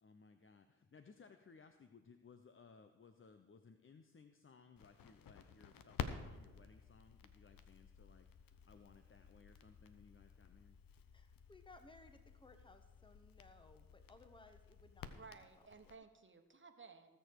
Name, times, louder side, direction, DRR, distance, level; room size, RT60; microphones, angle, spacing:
voice 1, 0.0-10.8, left 5 dB, 35° left, 8 dB, 0.9 m, -63 dB
Crackle, 4.8-16.0, left 7 dB, 75° left, 0.9 m, -52 dB
voice 2, 11.1-15.9, left 2 dB, 15° left, 8 dB, 1.3 m, -63 dB
voice 3, 15.1-17.2, right 4 dB, 35° right, 7 dB, 1.4 m, -58 dB
19.0 x 6.9 x 4.7 m, 1.2 s
supercardioid pair, 55°, 34 cm